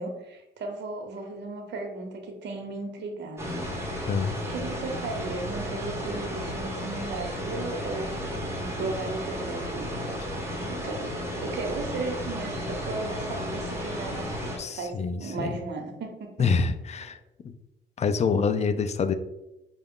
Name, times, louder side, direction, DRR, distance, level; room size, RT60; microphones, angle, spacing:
voice 1, 0.0-4.2 4.5-10.1 10.6-16.5, right 3 dB, 60° right, 3 dB, 0.9 m, -36 dB
sound 1, 3.4-14.6, equal, 15° right, 1.2 m, -33 dB
voice 2, 4.1-4.4 14.6-15.5 16.4-17.2 17.4-17.5 18.0-19.1, left 5 dB, 35° left, 10 dB, 0.4 m, -26 dB
5.0 x 2.3 x 3.6 m, 0.92 s
cardioid pair, 90°, 20 cm